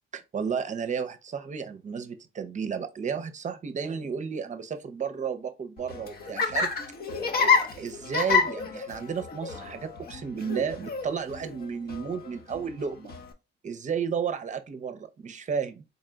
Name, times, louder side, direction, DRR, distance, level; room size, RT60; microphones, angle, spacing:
voice 1, 0.1-6.7 7.4-13.1 13.6-15.8, right 6 dB, 40° right, 0.6 m, -33 dB
Laughter, 5.8-13.3, left 5 dB, 50° left, 0.7 m, -29 dB
4.0 x 2.2 x 3.8 m
cardioid pair, 90°, 20 cm